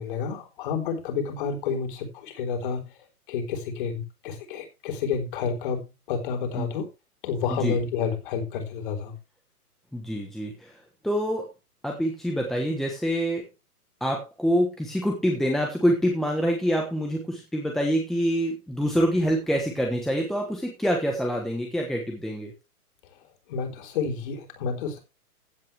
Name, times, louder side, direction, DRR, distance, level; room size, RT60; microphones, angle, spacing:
voice 1, 0.0-3.0 3.3-6.9 7.2-9.2 23.1-25.0, left 6 dB, 35° left, 4.1 m, -30 dB
voice 2, 9.9-10.8 11.0-11.5 11.8-13.4 14.0-22.5, equal, ahead, 1.2 m, -26 dB
15.5 x 9.2 x 3.4 m
hypercardioid pair, 160°, 45 cm